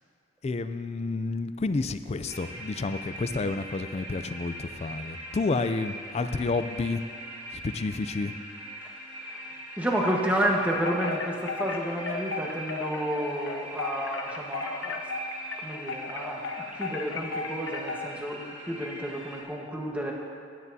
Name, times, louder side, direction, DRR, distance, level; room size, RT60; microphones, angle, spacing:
voice 1, 0.4-7.0 7.5-8.3, left 3 dB, 35° left, 10 dB, 0.4 m, -30 dB
sound 1, 2.3-19.4, right 1 dB, 35° right, 2.3 m, -41 dB
voice 2, 8.8-9.5 9.8-15.0 15.5-20.1, right 1 dB, 10° right, -2 dB, 1.2 m, -31 dB
Wind chime, 10.8-18.2, left 4 dB, 75° left, 0.7 m, -35 dB
16.5 x 9.8 x 2.7 m, 2.4 s
head